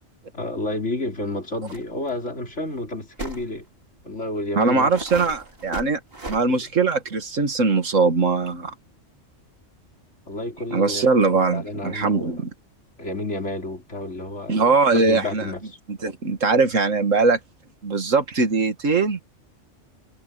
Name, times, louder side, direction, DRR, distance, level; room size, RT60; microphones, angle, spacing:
voice 1, 0.3-3.6 4.0-4.9 6.2-6.7 10.3-11.1 11.3-12.3 13.0-15.8, left 2 dB, 65° left, 5.0 m, -30 dB
sound 1, 1.7-1.8 2.1-2.2 3.2-3.5 4.2-4.3 4.9-6.4, right 2 dB, 50° right, 3.9 m, -35 dB
voice 2, 4.6-6.0 6.3-8.7 10.7-12.5 14.5-15.5 16.0-17.4 17.8-19.2, right 4 dB, 80° right, 2.2 m, -21 dB
omnidirectional pair, 1.3 m